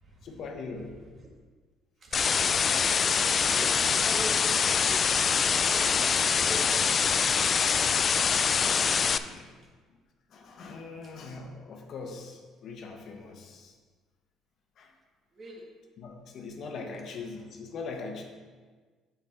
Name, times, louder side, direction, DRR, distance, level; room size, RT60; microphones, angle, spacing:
voice 1, 0.2-1.0 2.2-2.3 8.8-9.5 10.3-13.8 14.8-14.9 16.0-18.2, left 4 dB, 60° left, 3 dB, 1.1 m, -41 dB
voice 2, 2.0-2.5 2.9-5.0 5.7-7.9 15.4-15.7, equal, 45° right, 0 dB, 1.7 m, -43 dB
sound 1, 2.1-9.2, left 6 dB, 40° left, 0.3 m, -24 dB
6.4 x 6.2 x 4.4 m, 1.5 s
supercardioid pair, 80°, 0 cm